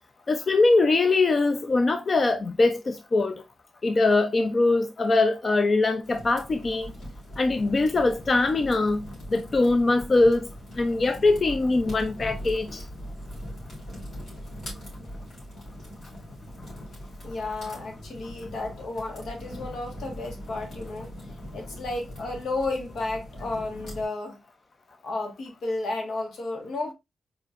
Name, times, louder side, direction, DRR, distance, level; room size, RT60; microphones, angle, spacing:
voice 1, 0.3-3.4 3.8-6.9 7.4-9.0 9.3-10.5 10.8-12.8, left 3 dB, 35° left, 0.4 m, -22 dB
sound 1, 6.0-24.0, equal, 60° left, 3.0 m, -41 dB
voice 2, 17.2-21.1 21.5-24.4 25.0-26.9, left 2 dB, 85° left, 1.4 m, -32 dB
4.4 x 4.3 x 2.4 m
wide cardioid pair, 135°, 0 cm